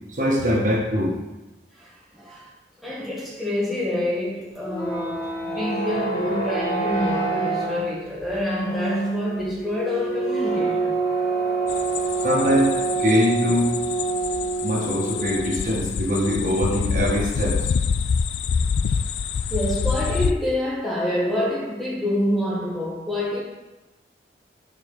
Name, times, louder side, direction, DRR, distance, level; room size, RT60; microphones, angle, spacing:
voice 1, 0.1-1.2 12.2-13.8 14.6-17.6, equal, 50° right, 1.4 m, -22 dB
voice 2, 1.7-2.5 2.8-11.0 18.9-19.0 19.5-23.4, left 1 dB, ahead, 0.9 m, -27 dB
sound 1, 4.5-15.8, right 3 dB, 55° left, 1.4 m, -27 dB
sound 2, 11.7-20.3, left 6 dB, 90° left, 0.3 m, -26 dB
8.6 x 4.6 x 3.7 m
head